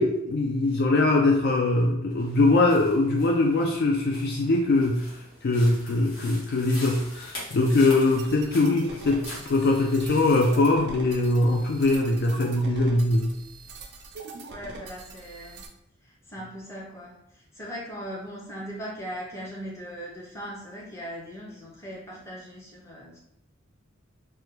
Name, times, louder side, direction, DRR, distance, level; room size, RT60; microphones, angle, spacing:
voice 1, 0.0-13.3, left 2 dB, 45° left, 1 dB, 0.3 m, -22 dB
sound 1, 2.2-10.6, left 1 dB, 70° left, 1.3 m, -44 dB
sound 2, 8.2-15.7, right 3 dB, 50° right, 0.4 m, -43 dB
voice 2, 14.5-15.7 16.0-23.2, equal, 15° left, -4 dB, 0.6 m, -39 dB
3.3 x 2.2 x 3.0 m, 0.81 s
head